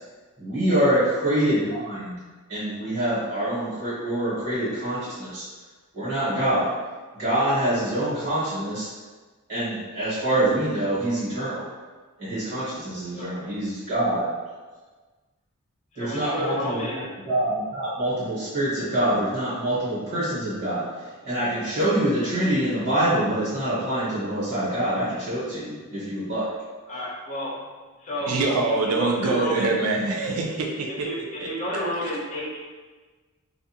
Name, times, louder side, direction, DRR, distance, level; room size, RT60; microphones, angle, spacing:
voice 1, 0.4-2.2 2.5-5.4 5.9-6.7 7.1-8.9 9.5-11.7 12.2-14.3 15.9-16.8 17.2-20.8 21.2-26.5, right 1 dB, 45° right, -12 dB, 1.2 m, -25 dB
voice 2, 15.9-17.0 26.9-27.5 28.0-28.3 28.8-29.7 31.0-31.2 31.4-32.6, left 1 dB, 30° left, -5 dB, 0.6 m, -30 dB
voice 3, 28.3-31.1 31.4-31.5 32.0-32.1, right 3 dB, 75° right, 0 dB, 0.5 m, -24 dB
2.5 x 2.3 x 2.8 m, 1.4 s
head